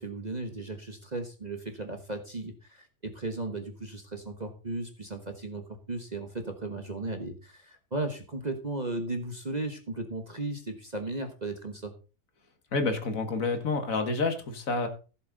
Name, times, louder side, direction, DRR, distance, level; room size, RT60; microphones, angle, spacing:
voice 1, 0.0-11.9, right 2 dB, 30° right, 6 dB, 1.2 m, -36 dB
voice 2, 12.7-14.9, left 3 dB, 55° left, 8 dB, 1.9 m, -28 dB
15.0 x 7.3 x 3.9 m, 0.34 s
omnidirectional pair, 1.7 m